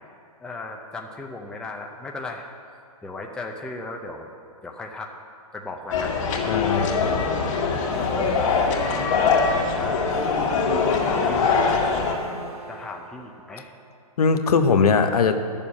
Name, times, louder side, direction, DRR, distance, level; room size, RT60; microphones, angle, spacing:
voice 1, 0.4-2.5 3.0-4.3 4.6-5.1 5.5-6.2 8.7-9.0 9.7-10.3 11.1-11.8 12.7-13.7, left 2 dB, 5° left, 1 dB, 0.5 m, -36 dB
sound 1, 5.9-12.1, left 5 dB, 55° left, 2.0 m, -22 dB
voice 2, 6.5-7.5 14.2-15.4, left 5 dB, 80° left, 8 dB, 1.0 m, -21 dB
sound 2, 7.7-14.0, right 2 dB, 90° right, 2.6 m, -39 dB
11.0 x 7.0 x 8.6 m, 2.3 s
hypercardioid pair, 150°, 20 cm